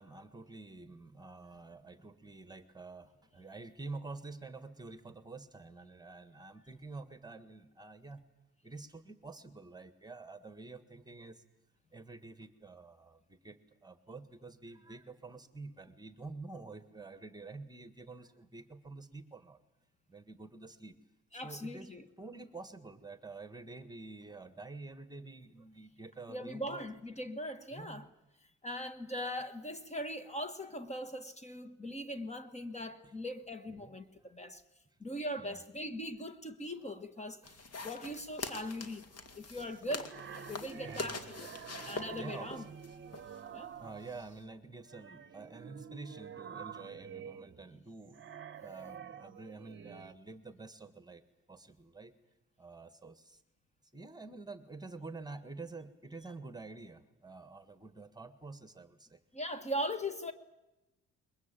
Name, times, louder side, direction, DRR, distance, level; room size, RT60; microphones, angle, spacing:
voice 1, 0.0-8.2 8.6-11.4 11.9-19.6 20.1-21.0 21.3-21.9 22.2-26.8 27.7-28.1 33.7-34.5 35.4-35.6 36.8-36.9 37.2-37.6 39.2-39.3 40.8-41.2 42.2-42.6 43.8-48.2 48.6-51.2 51.5-52.1 52.6-53.4 53.9-59.2, right 3 dB, 15° right, 1.7 m, -48 dB
voice 2, 21.3-22.1 26.3-28.1 28.6-34.6 35.0-39.0 39.4-40.2 40.5-41.5 41.8-42.6 43.5-43.7 59.3-60.3, equal, 20° left, 1.6 m, -40 dB
sound 1, 37.4-44.4, left 3 dB, 55° left, 2.6 m, -45 dB
sound 2, 39.6-44.4 44.9-50.1, right 8 dB, 40° right, 1.0 m, -48 dB
22.0 x 21.0 x 9.1 m
cardioid pair, 90°, 30 cm